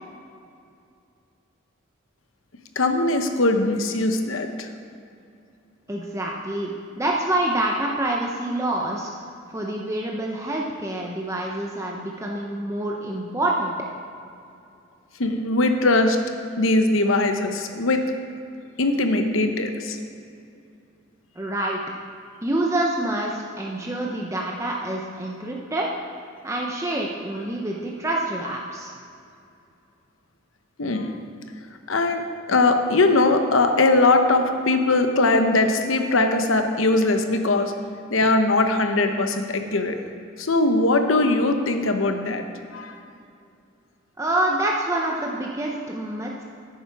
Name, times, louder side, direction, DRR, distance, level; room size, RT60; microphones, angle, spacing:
voice 1, 2.8-4.7 15.2-16.2 16.6-18.0 18.8-20.0 30.8-31.1 31.9-32.2 32.5-37.7 38.1-40.0 40.4-42.4 42.7-43.0, left 2 dB, 80° left, 6 dB, 0.9 m, -20 dB
voice 2, 5.9-9.1 9.5-13.7 21.4-21.8 22.4-25.9 26.4-28.9 44.2-46.4, right 1 dB, 15° right, -2 dB, 0.7 m, -27 dB
11.0 x 9.5 x 4.7 m, 2.5 s
head